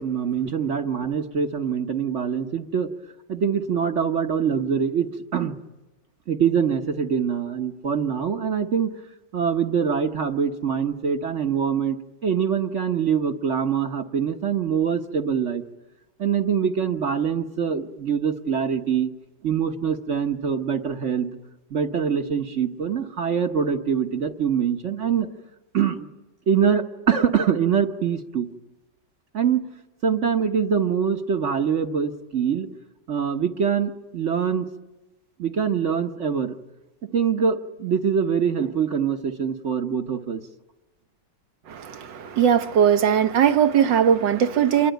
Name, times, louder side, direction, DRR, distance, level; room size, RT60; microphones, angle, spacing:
voice 1, 0.0-2.9 3.3-5.6 6.3-8.9 9.3-15.6 16.2-19.1 19.4-21.3 21.7-25.3 25.7-26.1 26.5-28.5 29.3-29.7 30.0-32.7 33.1-34.7 35.4-36.5 37.1-40.4, right 7 dB, 45° right, 1.2 m, -24 dB
voice 2, 41.7-44.9, right 8 dB, 75° right, 1.8 m, -19 dB
27.5 x 22.0 x 9.1 m
omnidirectional pair, 2.0 m